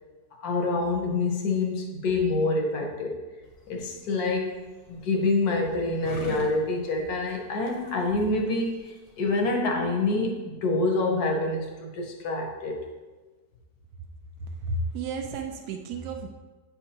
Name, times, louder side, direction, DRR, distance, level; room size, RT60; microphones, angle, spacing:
voice 1, 0.4-3.2 3.7-4.6 4.9-12.8, left 2 dB, 75° left, 2 dB, 1.5 m, -26 dB
sound 1, 3.4-9.5, left 2 dB, 45° left, 0.9 m, -44 dB
voice 2, 14.6-16.3, right 3 dB, 85° right, 4 dB, 1.2 m, -32 dB
9.2 x 4.4 x 2.8 m, 1.3 s
omnidirectional pair, 1.7 m